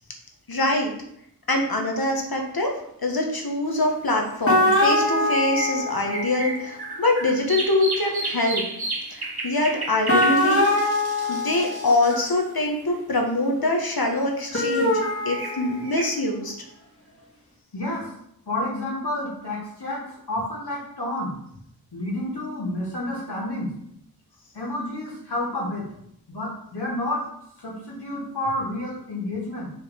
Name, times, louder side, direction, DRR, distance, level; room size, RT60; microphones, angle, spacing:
voice 1, 0.5-0.9 1.5-2.7 3.0-8.6 9.1-10.9 11.3-16.5, left 2 dB, 65° left, 2 dB, 1.6 m, -24 dB
sound 1, 3.8-3.9 4.8-13.2 14.5-16.1, right 2 dB, 70° right, 1.7 m, -33 dB
sound 2, 4.4-6.4 10.1-12.2 14.5-16.1, left 1 dB, 35° left, 2.1 m, -23 dB
voice 2, 17.7-18.1 18.5-21.3 21.9-23.7 24.5-25.9 26.3-27.3 27.6-29.7, left 1 dB, 85° left, -5 dB, 2.9 m, -30 dB
6.5 x 5.0 x 5.3 m, 0.72 s
wide cardioid pair, 65°, 39 cm